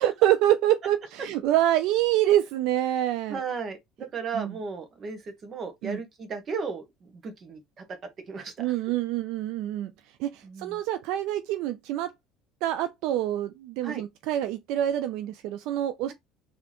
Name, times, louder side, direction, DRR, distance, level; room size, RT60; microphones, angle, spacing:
voice 1, 0.0-3.4 4.3-4.5 5.8-6.0 8.6-9.9 10.2-12.1 12.6-16.1, right 13 dB, 70° right, 0.4 m, -26 dB
voice 2, 3.3-7.8 8.3-8.7 10.4-10.8 13.8-14.0, right 5 dB, 35° right, 1.4 m, -35 dB
4.1 x 3.4 x 3.0 m
cardioid pair, 120°, 0 cm